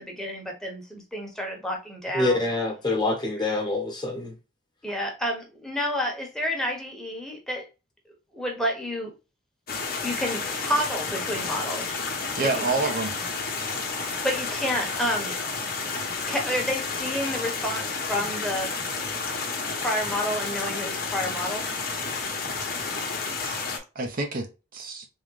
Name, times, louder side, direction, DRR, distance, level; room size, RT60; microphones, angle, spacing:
voice 1, 0.0-2.4 4.8-7.7 8.3-9.1 10.0-12.0 12.4-13.0 13.8-15.4 16.3-18.7 19.7-21.6, equal, 5° left, 1.1 m, -30 dB
voice 2, 2.1-4.3, left 2 dB, 25° left, 1.2 m, -26 dB
sound 1, 9.7-23.8, left 4 dB, 55° left, 0.9 m, -31 dB
voice 3, 12.4-13.1 23.4-23.6 24.0-25.1, right 3 dB, 50° right, 0.7 m, -28 dB
3.6 x 3.1 x 3.2 m
head